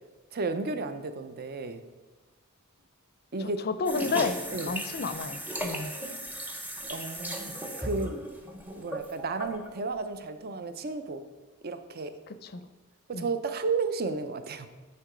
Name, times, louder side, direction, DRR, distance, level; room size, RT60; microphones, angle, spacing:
voice 1, 0.3-1.8 3.3-3.7 4.1-4.8 6.9-8.2 8.8-11.2 11.6-12.2 13.1-14.7, right 4 dB, 45° right, 10 dB, 0.6 m, -33 dB
voice 2, 3.4-4.3 4.7-5.9 12.3-12.6 13.1-13.3, left 4 dB, 45° left, 11 dB, 0.5 m, -31 dB
sound 1, 3.9-9.7, equal, 10° right, 0.7 m, -36 dB
9.6 x 4.6 x 5.0 m, 1.2 s
head